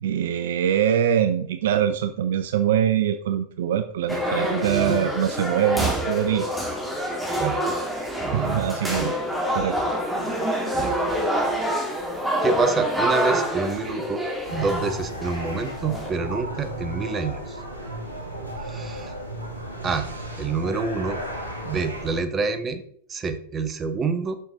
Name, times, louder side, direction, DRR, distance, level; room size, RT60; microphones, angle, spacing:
voice 1, 0.0-6.5 8.3-9.1 9.5-10.0, right 9 dB, 60° right, 10 dB, 0.4 m, -23 dB
sound 1, 4.1-16.1, equal, 5° right, 1.8 m, -26 dB
voice 2, 4.6-5.1 7.4-7.6 8.2-8.7 9.0-9.1 10.7-10.9 12.4-14.2 14.5-17.6 18.6-19.1 19.8-20.1 20.4-21.2 21.6-22.8 23.1-24.3, right 4 dB, 20° right, 8 dB, 0.9 m, -27 dB
sound 2, 14.5-22.2, right 1 dB, 80° right, 1.5 m, -34 dB
6.7 x 5.9 x 3.8 m, 0.64 s
figure-of-eight pair, 90°, 0 cm